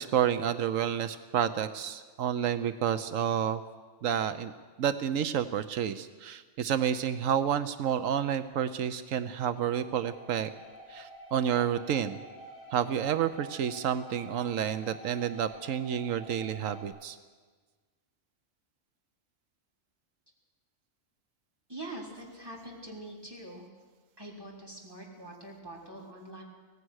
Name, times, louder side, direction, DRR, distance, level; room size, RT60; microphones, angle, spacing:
voice 1, 0.0-3.6 4.0-4.5 4.8-10.5 10.9-12.2 12.7-17.2, right 9 dB, 90° right, 11 dB, 1.2 m, -30 dB
sound 1, 9.5-16.8, right 1 dB, 65° left, 4.3 m, -49 dB
voice 2, 21.7-23.7 24.2-26.4, right 1 dB, 20° right, -2 dB, 3.7 m, -44 dB
24.5 x 17.5 x 6.4 m, 1.4 s
omnidirectional pair, 1.3 m